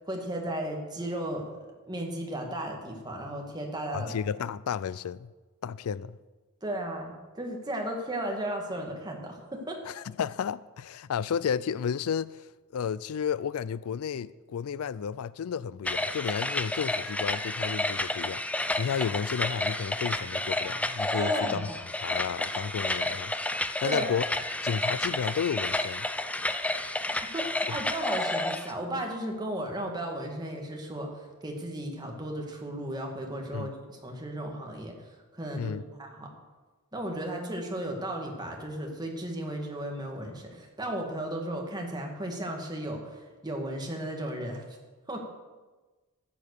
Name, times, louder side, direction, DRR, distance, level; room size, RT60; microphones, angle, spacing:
voice 1, 0.1-1.4 1.9-4.1 6.6-9.8 21.2-21.7 23.8-24.2 27.3-34.9 35.3-36.3 36.9-44.6 45.1-45.2, right 1 dB, 20° right, 2.0 m, -35 dB
voice 2, 3.9-5.3 5.6-6.2 9.9-12.5 12.7-18.4 18.8-21.7 22.0-24.2 24.6-26.1 27.7-27.8 33.5-33.7 35.6-35.8, left 7 dB, 75° left, 0.4 m, -32 dB
sound 1, 15.8-28.7, left 2 dB, 5° left, 0.5 m, -31 dB
14.0 x 7.4 x 6.7 m
head